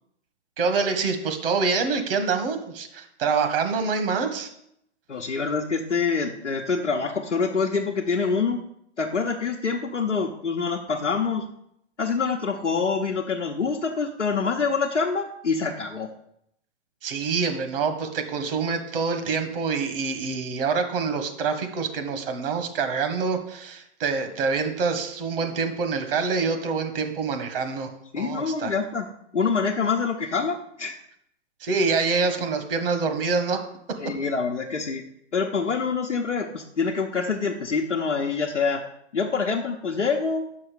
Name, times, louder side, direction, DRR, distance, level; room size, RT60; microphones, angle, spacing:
voice 1, 0.6-4.5 17.0-27.9 28.2-28.7 31.6-33.6, right 4 dB, 55° right, 7 dB, 1.5 m, -26 dB
voice 2, 5.1-8.6 9.0-11.5 12.0-16.1 28.1-29.1 29.3-30.9 34.0-35.0 35.3-38.8 39.1-40.5, left 5 dB, 90° left, 0 dB, 0.9 m, -26 dB
6.3 x 5.6 x 6.8 m, 0.74 s
figure-of-eight pair, 115°, 35 cm